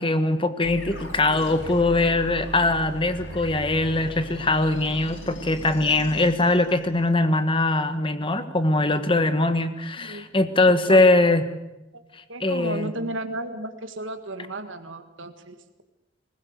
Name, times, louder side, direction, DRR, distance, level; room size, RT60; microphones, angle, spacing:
voice 1, 0.0-11.4 12.4-12.9, left 2 dB, 25° left, 10 dB, 1.4 m, -21 dB
sound 1, 0.6-7.1, equal, 85° left, 4.9 m, -38 dB
voice 2, 10.9-11.2 11.9-12.0 12.3-15.6, right 2 dB, 80° right, 7 dB, 1.8 m, -33 dB
20.5 x 20.0 x 8.1 m, 0.98 s
head